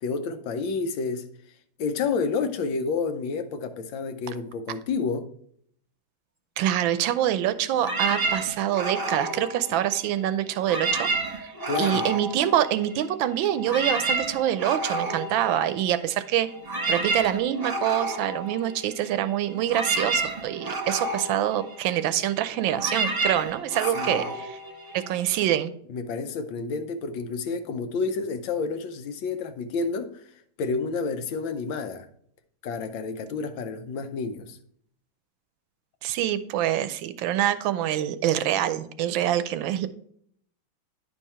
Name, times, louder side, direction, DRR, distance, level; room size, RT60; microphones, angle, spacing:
voice 1, 0.0-1.2 1.8-5.3 11.7-12.1 23.9-24.2 25.9-30.2 30.6-32.1 32.6-34.6, left 4 dB, 80° left, 8 dB, 1.5 m, -29 dB
voice 2, 6.6-24.6 24.9-25.7 36.0-39.9, right 11 dB, 80° right, 12 dB, 1.3 m, -26 dB
sound 1, 7.8-10.2 10.6-13.1 13.4-25.3, right 2 dB, 25° right, 1.1 m, -30 dB
10.0 x 4.6 x 4.3 m, 0.63 s
omnidirectional pair, 2.2 m